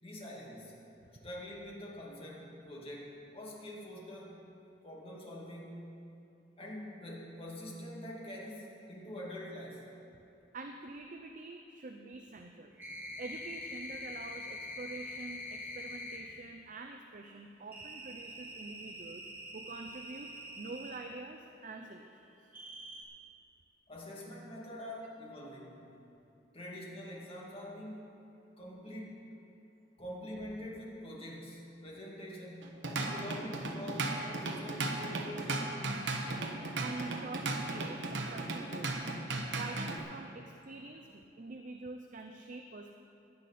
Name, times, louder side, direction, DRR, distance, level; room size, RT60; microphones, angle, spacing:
voice 1, 0.0-0.7 1.2-4.4 4.8-6.0 6.6-9.9 23.9-25.9 26.5-29.4 30.0-36.0, left 1 dB, 30° left, -3 dB, 2.3 m, -45 dB
voice 2, 10.5-12.8 13.2-19.3 19.5-22.2 36.8-39.0 39.3-42.9, right 3 dB, 45° right, 4 dB, 0.6 m, -46 dB
sound 1, 12.8-16.2 17.7-21.0 22.5-23.0, left 1 dB, 10° right, 2.0 m, -44 dB
Drum kit / Drum, 32.6-40.0, right 2 dB, 70° right, 1.2 m, -36 dB
16.0 x 11.0 x 4.2 m, 2.7 s
head